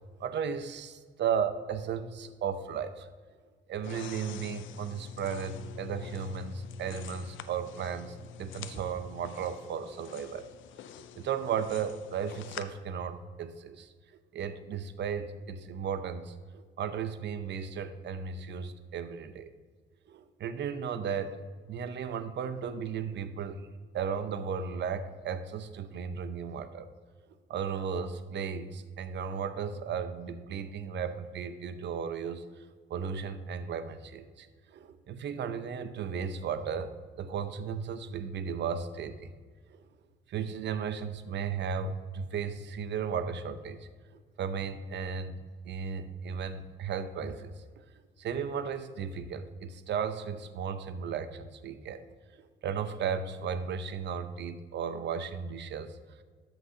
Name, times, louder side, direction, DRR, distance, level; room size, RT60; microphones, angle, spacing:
voice 1, 0.2-3.1 3.7-10.5 10.9-13.9 14.3-19.5 20.1-21.4 21.7-23.6 23.9-26.9 27.5-32.4 32.9-39.3 39.7-39.8 40.3-45.4 45.6-47.5 48.2-52.0 52.3-56.2, right 7 dB, 65° right, 11 dB, 0.7 m, -35 dB
sound 1, 3.8-12.6, left 8 dB, 75° left, 0.5 m, -46 dB
13.0 x 6.1 x 2.8 m, 1.6 s
cardioid pair, 90°, 20 cm